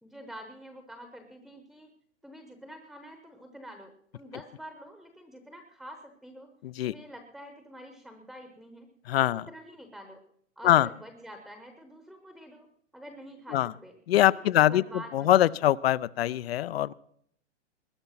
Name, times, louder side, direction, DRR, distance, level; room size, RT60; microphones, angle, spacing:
voice 1, 0.0-1.9 2.2-6.5 6.8-8.9 9.2-10.2 10.6-12.7 12.9-13.9 14.3-15.3, equal, ahead, 6 dB, 0.9 m, -47 dB
voice 2, 6.6-6.9 9.1-9.5 10.6-10.9 13.5-13.7 14.1-14.8 15.1-16.9, left 13 dB, 55° left, 22 dB, 0.6 m, -23 dB
20.5 x 9.6 x 5.8 m, 0.65 s
hypercardioid pair, 155°, 36 cm